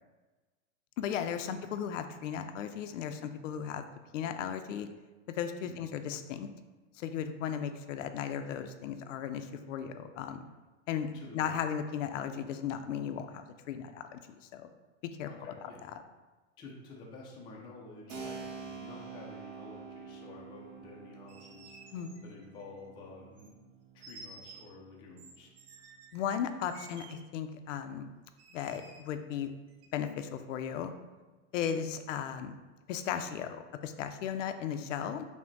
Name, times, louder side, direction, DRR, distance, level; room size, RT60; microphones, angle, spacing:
voice 1, 1.0-3.8 4.1-4.9 5.3-6.5 7.0-10.4 10.9-14.2 14.5-14.7 15.2-15.3 21.9-22.1 26.1-28.1 28.5-29.5 29.9-30.9 31.5-32.6 32.9-35.3, left 8 dB, 75° left, 8 dB, 0.5 m, -36 dB
voice 2, 5.6-6.0 11.1-11.4 15.2-15.8 16.6-23.5 23.9-25.5 26.8-27.2, left 3 dB, 15° left, -2 dB, 0.3 m, -50 dB
Keyboard (musical), 18.1-26.5, right 5 dB, 40° right, 0.9 m, -48 dB
sound 1, 21.1-22.9 23.4-23.5 24.0-24.7 25.2-27.2 28.4-29.0 29.7-29.9, right 3 dB, 65° right, 0.8 m, -53 dB
5.9 x 2.1 x 3.9 m, 1.2 s
supercardioid pair, 150°, 37 cm